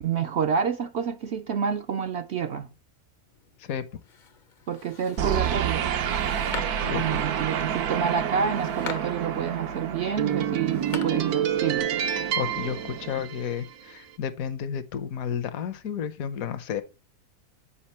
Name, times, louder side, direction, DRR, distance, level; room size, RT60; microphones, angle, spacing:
voice 1, 0.0-2.7 4.7-6.0 6.9-12.0, right 7 dB, 65° right, 0.7 m, -28 dB
sound 1, 3.3-11.8, left 6 dB, 45° left, 0.6 m, -44 dB
sound 2, 5.2-13.7, right 9 dB, 80° right, 1.4 m, -28 dB
voice 2, 12.4-16.8, left 8 dB, 70° left, 1.2 m, -31 dB
8.7 x 5.0 x 4.3 m
omnidirectional pair, 1.6 m